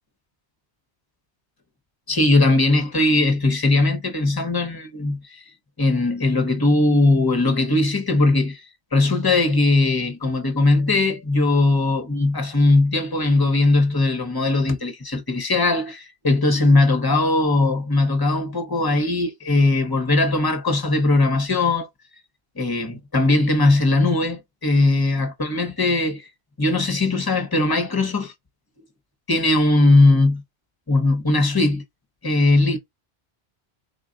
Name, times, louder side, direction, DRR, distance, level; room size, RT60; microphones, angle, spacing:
voice 1, 2.1-5.4 5.8-8.6 8.9-21.9 22.6-26.3 26.6-28.3 29.3-30.4 30.9-31.8 32.2-32.8, left 2 dB, 25° left, 0.8 m, -19 dB
3.8 x 2.3 x 3.8 m
omnidirectional pair, 1.1 m